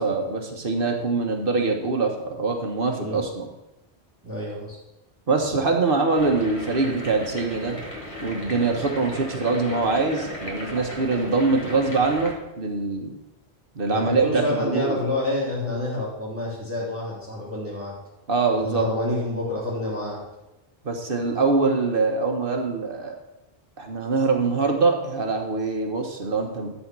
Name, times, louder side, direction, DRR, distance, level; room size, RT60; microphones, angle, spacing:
voice 1, 0.0-3.5 5.3-7.8 8.2-13.1 13.7-15.0 18.3-18.8 20.8-23.1 23.8-26.7, right 3 dB, 55° right, 3 dB, 1.5 m, -23 dB
voice 2, 4.2-4.8 13.9-17.9 18.6-20.2, left 1 dB, 10° right, -8 dB, 3.0 m, -28 dB
sound 1, 6.1-12.3, equal, 30° left, 1.6 m, -36 dB
12.0 x 4.3 x 6.1 m, 0.96 s
omnidirectional pair, 1.1 m